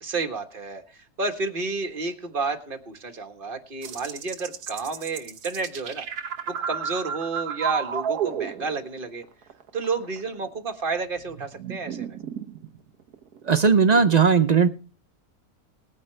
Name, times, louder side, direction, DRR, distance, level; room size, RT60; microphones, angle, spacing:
voice 1, 0.0-6.1 6.5-9.2 9.7-12.2, right 4 dB, 35° right, 7 dB, 1.6 m, -31 dB
sound 1, 3.8-9.0 9.2-10.5 11.2-14.1, right 8 dB, 80° right, 1.5 m, -32 dB
voice 2, 13.5-14.7, right 5 dB, 55° right, 11 dB, 0.4 m, -17 dB
20.0 x 9.7 x 3.3 m, 0.35 s
omnidirectional pair, 1.6 m